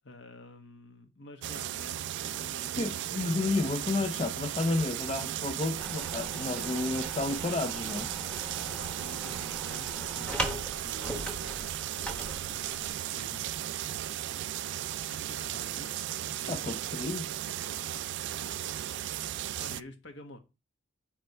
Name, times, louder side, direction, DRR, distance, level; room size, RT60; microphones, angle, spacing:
voice 1, 0.0-3.2 8.8-13.4 15.1-16.7 18.4-18.8 19.1-20.4, left 2 dB, 60° left, 1.3 m, -50 dB
sound 1, 1.4-19.8, right 12 dB, 60° right, 0.3 m, -36 dB
voice 2, 2.8-8.1 16.5-17.3, left 2 dB, 30° left, 0.5 m, -31 dB
sound 2, 5.8-12.9, equal, 5° left, 1.0 m, -40 dB
8.8 x 3.1 x 5.5 m
head